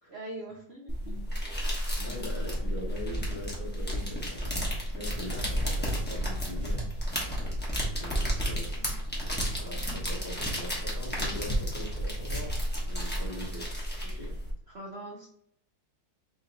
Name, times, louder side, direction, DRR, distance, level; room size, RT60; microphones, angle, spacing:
voice 1, 0.1-1.1 8.3-8.9 14.7-15.3, right 1 dB, 80° right, -2 dB, 0.5 m, -43 dB
sound 1, 0.9-14.5, equal, 10° left, 0.6 m, -32 dB
voice 2, 1.9-6.9 7.5-7.6 7.9-8.8 9.4-13.7 14.0-14.4, left 1 dB, 30° left, -5 dB, 0.9 m, -42 dB
3.8 x 2.9 x 3.9 m, 0.72 s
omnidirectional pair, 2.0 m